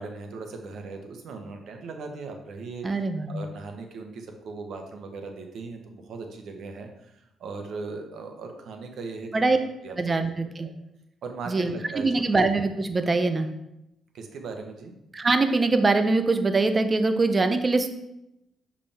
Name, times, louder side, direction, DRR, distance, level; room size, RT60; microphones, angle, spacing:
voice 1, 0.0-3.0 3.3-10.2 10.6-10.7 11.2-12.1 14.1-15.0, right 4 dB, 65° right, 4 dB, 1.2 m, -38 dB
voice 2, 2.8-3.3 9.3-9.6 10.0-10.7 11.5-13.5 15.1-17.9, right 3 dB, 30° right, 8 dB, 0.7 m, -23 dB
7.1 x 4.9 x 3.5 m, 0.87 s
cardioid pair, 90°, 0 cm